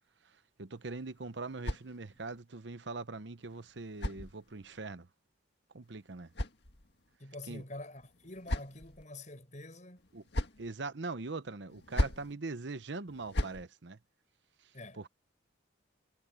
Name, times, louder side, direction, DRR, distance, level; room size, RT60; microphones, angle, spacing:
voice 1, 0.6-5.1 5.7-6.3 7.5-7.6 10.1-10.2 10.6-14.0 14.9-15.1, right 3 dB, 65° right, 0.9 m, -41 dB
sound 1, 0.8-2.4 3.4-4.8 5.8-7.2 8.0-9.0 10.0-10.7 11.7-12.3 13.1-13.6, left 1 dB, 60° left, 1.9 m, -38 dB
voice 2, 7.2-10.1 14.7-15.1, left 2 dB, 40° left, 6.1 m, -47 dB
head